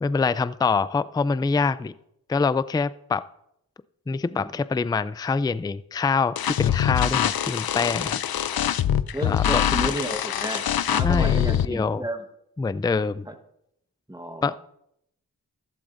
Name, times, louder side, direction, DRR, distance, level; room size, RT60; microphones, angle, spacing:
voice 1, 0.0-1.9 2.3-3.2 4.1-8.2 9.2-9.6 11.0-12.1 12.6-13.3 14.4-14.5, left 4 dB, 10° left, 15 dB, 0.3 m, -25 dB
sound 1, 6.4-11.7, left 10 dB, 80° left, 0.5 m, -24 dB
voice 2, 9.1-10.6 10.9-12.2 13.3-13.4 14.1-14.6, right 1 dB, 10° right, 5 dB, 1.3 m, -32 dB
15.0 x 12.0 x 2.6 m, 0.77 s
wide cardioid pair, 55°, 36 cm